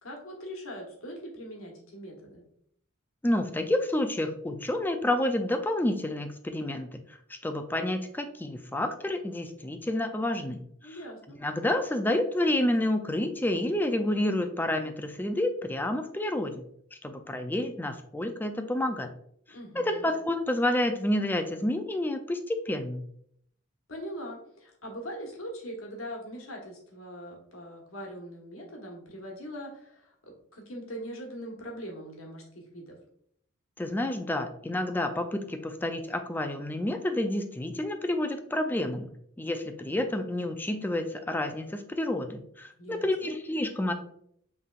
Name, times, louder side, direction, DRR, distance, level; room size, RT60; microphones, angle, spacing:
voice 1, 0.0-2.4 10.8-11.4 19.5-20.1 23.9-33.0 42.8-43.3, equal, 80° left, 0 dB, 1.3 m, -41 dB
voice 2, 3.2-7.0 7.3-10.6 11.4-16.7 17.0-19.1 19.8-23.0 33.8-39.1 39.4-43.9, left 1 dB, 10° left, 7 dB, 0.3 m, -29 dB
5.6 x 3.3 x 2.4 m, 0.67 s
head